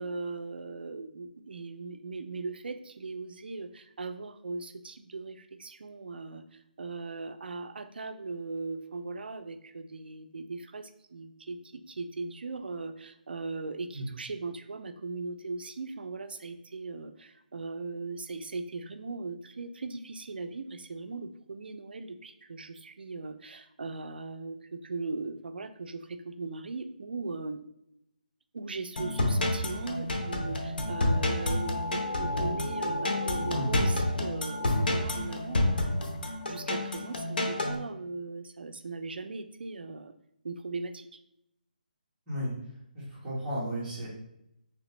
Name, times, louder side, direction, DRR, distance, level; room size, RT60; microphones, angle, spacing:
voice 1, 0.0-27.6 28.5-36.1 36.5-40.1 40.4-41.1, right 3 dB, 85° right, 9 dB, 0.4 m, -39 dB
sound 1, 28.9-37.8, left 1 dB, 70° left, 0.7 m, -29 dB
voice 2, 42.9-44.1, equal, 10° right, -10 dB, 1.3 m, -33 dB
3.3 x 2.9 x 3.0 m, 0.81 s
hypercardioid pair, 170°, 5 cm